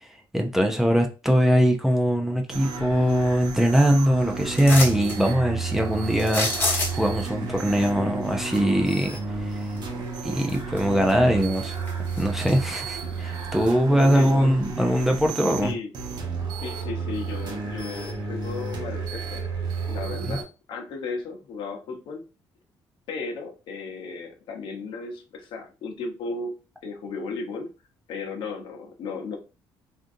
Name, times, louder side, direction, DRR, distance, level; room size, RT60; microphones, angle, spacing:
voice 1, 0.0-9.6 10.2-11.8 12.2-15.7 20.3-20.4, equal, 5° right, 3 dB, 0.4 m, -22 dB
sound 1, 2.5-20.4, right 5 dB, 55° right, 0.9 m, -32 dB
sound 2, 4.6-5.2 6.2-7.2 9.8-9.9 10.4-11.1 11.4-12.5 13.0-13.1, left 2 dB, 25° left, 1.1 m, -27 dB
voice 2, 13.9-14.5 15.6-15.9 16.6-19.4 19.9-22.3 23.1-26.5 26.8-27.7 28.1-29.4, left 4 dB, 70° left, 2 dB, 0.8 m, -35 dB
3.7 x 2.5 x 2.6 m, 0.32 s
cardioid pair, 135°, 9 cm